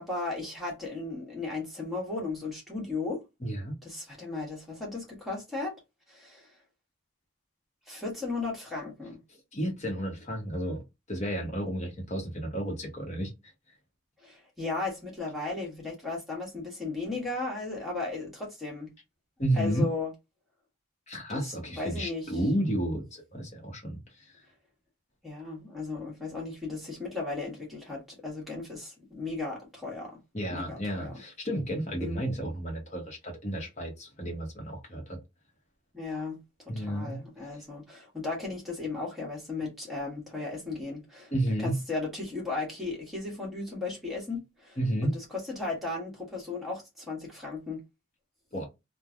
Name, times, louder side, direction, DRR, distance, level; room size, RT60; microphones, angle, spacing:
voice 1, 0.0-3.2 3.8-5.8 6.1-6.6 7.9-9.2 14.2-18.9 19.5-20.1 21.3-22.4 25.2-30.2 30.5-31.2 32.0-32.2 35.9-41.3 41.6-47.8, left 3 dB, ahead, 1.2 m, -36 dB
voice 2, 3.4-3.8 9.5-10.8 11.1-13.3 19.4-19.9 21.1-24.3 30.3-35.2 36.7-37.2 41.3-41.8 44.8-45.2 48.5-48.7, right 1 dB, 35° left, 1.0 m, -32 dB
3.1 x 2.2 x 2.4 m
head